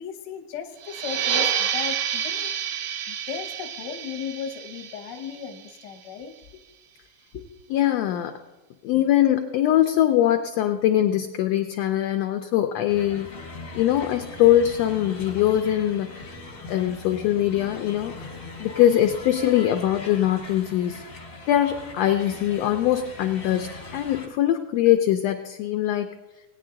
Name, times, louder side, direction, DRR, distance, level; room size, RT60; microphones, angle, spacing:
voice 1, 0.0-2.5 3.1-6.3 7.3-7.4, left 7 dB, 65° left, 3 dB, 1.1 m, -36 dB
sound 1, 0.8-6.1, right 9 dB, 75° right, 1.6 m, -29 dB
voice 2, 7.7-8.3 8.8-13.3 13.7-16.4 16.7-18.3 18.6-21.0 21.5-26.1, left 12 dB, 80° left, 6 dB, 1.5 m, -22 dB
sound 2, 12.9-24.3, left 3 dB, 45° left, 0.7 m, -40 dB
18.5 x 9.3 x 3.8 m, 1.1 s
omnidirectional pair, 3.6 m